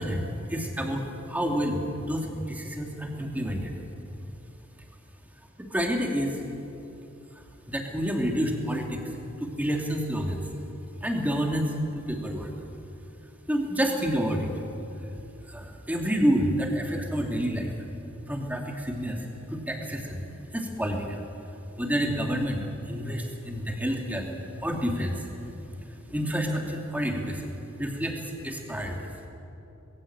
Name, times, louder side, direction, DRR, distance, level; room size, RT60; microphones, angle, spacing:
voice 1, 0.0-3.7 5.7-6.4 7.7-9.0 9.4-10.4 11.0-12.5 13.5-14.5 15.5-17.7 18.3-19.2 19.5-20.2 20.5-21.2 21.8-22.6 22.9-24.3 24.6-25.2 26.1-27.5 27.8-29.1, equal, 10° right, 1 dB, 2.5 m, -28 dB
21.0 x 16.0 x 8.7 m, 2.9 s
head